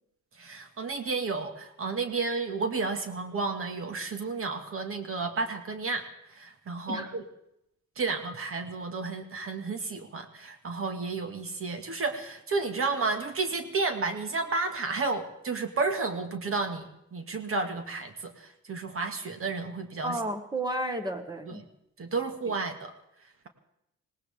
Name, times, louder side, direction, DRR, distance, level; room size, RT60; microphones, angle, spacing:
voice 1, 0.4-6.0 6.3-7.2 8.0-20.2 21.5-21.6 22.0-22.9, right 4 dB, 45° right, 6 dB, 1.9 m, -32 dB
voice 2, 20.0-21.6, right 1 dB, 15° right, 6 dB, 1.8 m, -32 dB
19.5 x 18.5 x 3.6 m, 0.80 s
cardioid pair, 90°, 30 cm